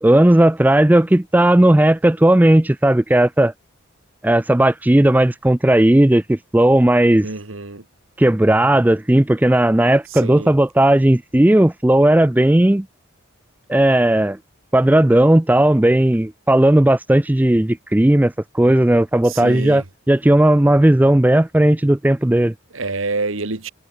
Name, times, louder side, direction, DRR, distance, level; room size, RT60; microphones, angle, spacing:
voice 1, 0.0-3.5 4.2-7.3 8.2-12.9 13.7-14.4 14.7-22.5, right 1 dB, 10° right, 0.3 m, -15 dB
voice 2, 7.2-7.8 10.2-10.5 19.2-19.8 22.7-23.7, right 3 dB, 85° right, 1.9 m, -27 dB
head